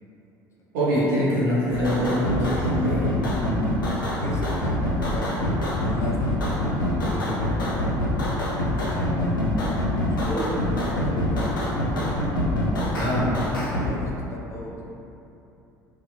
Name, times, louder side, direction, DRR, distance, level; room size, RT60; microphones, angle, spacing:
voice 1, 0.7-3.2 12.9-13.2, equal, 65° right, -9 dB, 0.8 m, -24 dB
sound 1, 1.7-13.9, left 1 dB, 80° left, 0.4 m, -25 dB
voice 2, 3.8-9.5 10.1-12.2 12.9-13.3 13.7-14.8, left 1 dB, 25° left, -3 dB, 0.5 m, -37 dB
2.5 x 2.1 x 2.7 m, 2.9 s
figure-of-eight pair, 60°, 11 cm